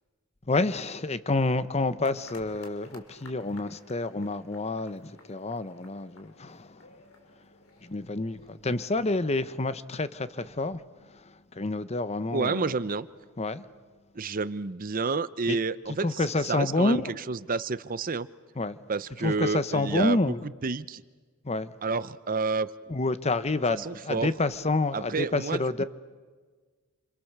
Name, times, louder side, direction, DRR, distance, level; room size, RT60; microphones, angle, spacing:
voice 1, 0.5-7.0 7.8-12.8 13.4-13.7 15.5-15.6 15.9-17.1 18.6-18.8 19.2-20.4 21.4-21.8 22.9-25.8, left 2 dB, 30° left, 0.9 m, -29 dB
sound 1, 2.0-9.3, left 2 dB, 70° left, 3.3 m, -55 dB
voice 2, 12.3-13.1 14.1-16.1 16.5-18.3 18.9-20.2 20.6-21.0 21.8-22.7 23.9-24.3 24.9-25.8, right 4 dB, 40° right, 0.7 m, -29 dB
28.5 x 27.0 x 6.7 m
head